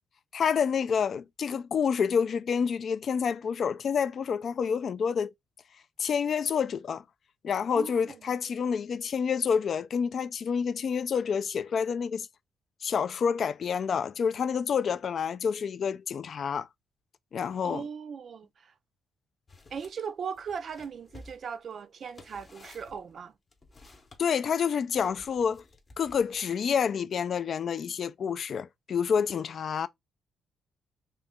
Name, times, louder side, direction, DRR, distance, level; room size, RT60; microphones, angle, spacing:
voice 1, 0.3-5.3 6.0-7.0 7.4-12.3 12.8-16.7 17.3-17.9 24.2-25.6 26.0-29.9, left 6 dB, 50° left, 0.3 m, -28 dB
voice 2, 7.7-8.2 17.6-18.7 19.7-23.3, right 6 dB, 50° right, 0.3 m, -38 dB
sound 1, 19.5-20.0 20.3-24.2 24.9-26.5, left 2 dB, 30° left, 0.8 m, -54 dB
3.0 x 2.8 x 3.5 m
cardioid pair, 115°, 0 cm